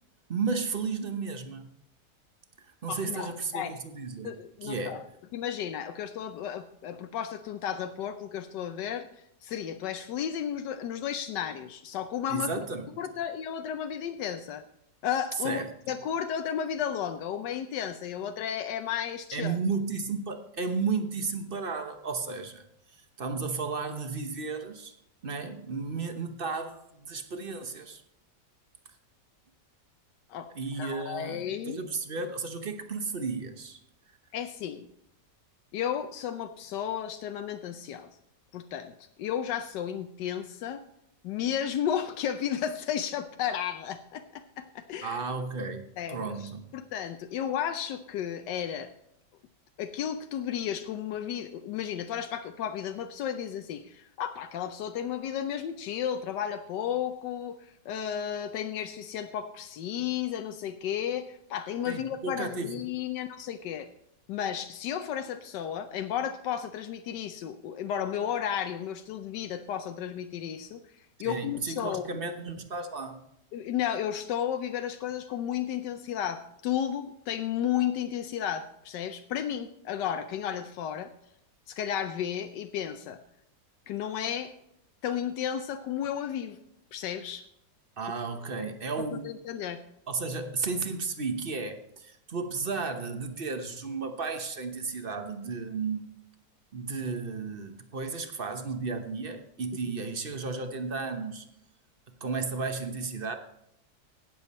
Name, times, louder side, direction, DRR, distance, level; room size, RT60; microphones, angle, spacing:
voice 1, 0.3-1.7 2.6-4.4 4.6-5.0 12.3-12.8 15.4-15.7 19.3-22.6 23.0-24.9 25.2-28.0 30.6-33.8 45.0-46.7 61.9-62.7 71.2-73.2 88.0-89.3 90.1-96.1 96.7-101.4 102.2-103.4, right 4 dB, 40° right, 8 dB, 1.0 m, -33 dB
voice 2, 2.9-3.7 4.2-5.0 5.3-9.1 9.4-12.6 13.0-14.6 15.0-19.6 30.3-30.5 30.8-31.8 34.3-34.9 35.7-38.1 38.5-38.9 39.2-40.8 41.2-45.2 46.0-48.9 49.8-63.9 64.3-72.1 73.5-81.1 81.7-83.2 83.9-84.5 85.0-86.6 86.9-87.5 89.0-89.8, left 9 dB, 85° left, 8 dB, 1.3 m, -33 dB
17.5 x 7.1 x 4.2 m, 0.79 s
omnidirectional pair, 1.8 m